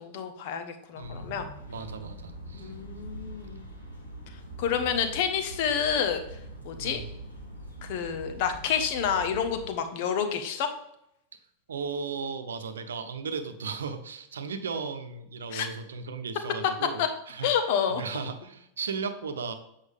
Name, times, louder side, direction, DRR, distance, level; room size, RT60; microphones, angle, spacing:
voice 1, 0.0-1.5 2.5-3.6 4.6-6.2 6.6-7.0 7.8-10.7 15.5-15.7 17.0-17.1 17.4-18.0, left 7 dB, 50° left, 7 dB, 1.0 m, -28 dB
voice 2, 0.9-1.3 1.7-2.7 6.8-7.0 11.7-17.5 18.0-19.5, right 5 dB, 65° right, 8 dB, 0.8 m, -36 dB
sound 1, 1.0-9.7, right 1 dB, 85° left, 2.3 m, -43 dB
8.1 x 5.5 x 3.5 m, 0.80 s
figure-of-eight pair, 90°, 0 cm